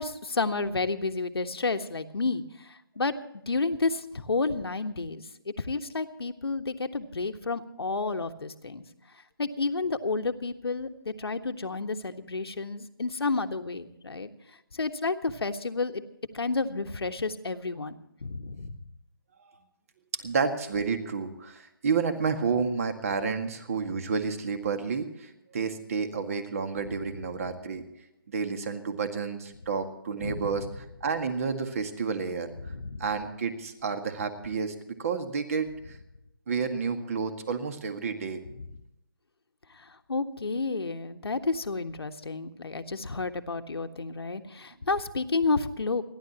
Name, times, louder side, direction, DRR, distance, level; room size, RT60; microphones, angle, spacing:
voice 1, 0.0-3.1 3.5-5.2 5.6-8.8 9.4-14.3 14.7-16.0 16.3-17.9 18.2-18.7 30.2-30.6 32.6-33.0 38.6-38.7 39.8-46.0, left 3 dB, 90° left, 6 dB, 1.5 m, -31 dB
voice 2, 20.2-27.8 28.3-32.5 33.0-35.7 36.5-38.4, right 5 dB, 35° right, 8 dB, 1.8 m, -30 dB
29.5 x 11.5 x 2.9 m, 0.84 s
hypercardioid pair, 165°, 13 cm